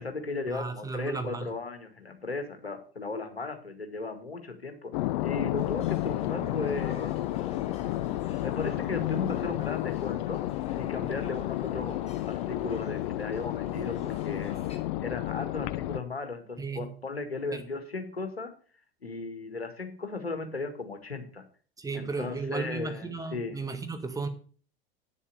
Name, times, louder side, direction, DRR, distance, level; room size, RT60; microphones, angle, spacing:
voice 1, 0.0-4.9 5.2-7.1 8.4-10.4 10.8-14.5 15.0-18.5 19.0-21.4 21.9-23.6, left 3 dB, 85° left, 7 dB, 1.9 m, -36 dB
voice 2, 0.5-1.5 16.6-16.9 17.5-17.6 21.8-24.3, right 4 dB, 10° right, 9 dB, 1.6 m, -34 dB
sound 1, 4.9-16.0, left 16 dB, 50° left, 0.6 m, -31 dB
sound 2, 5.6-14.8, left 2 dB, 20° left, 3.2 m, -47 dB
9.3 x 7.3 x 6.8 m, 0.41 s
figure-of-eight pair, 80°, 30 cm